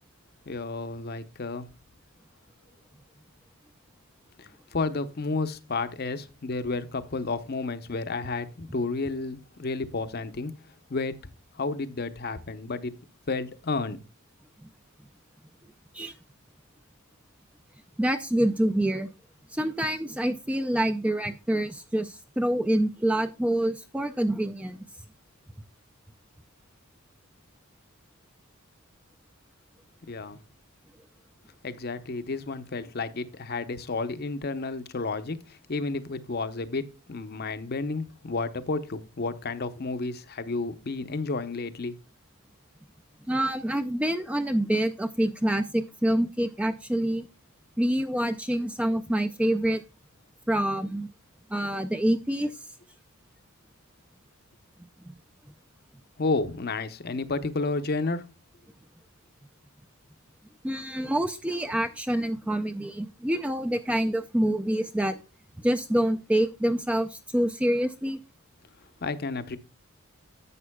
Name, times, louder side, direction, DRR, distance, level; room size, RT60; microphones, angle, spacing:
voice 1, 0.5-1.7 4.4-10.5 10.9-11.2 11.6-13.0 13.3-14.0 30.1-30.4 31.6-41.9 56.2-58.3 69.0-69.6, left 3 dB, 45° left, 0.7 m, -31 dB
voice 2, 18.0-19.1 19.5-24.8 43.3-47.3 47.8-49.8 50.5-51.1 51.5-52.5 55.0-55.1 60.6-65.2 65.6-68.2, right 1 dB, 5° right, 0.3 m, -26 dB
11.0 x 7.9 x 2.2 m
head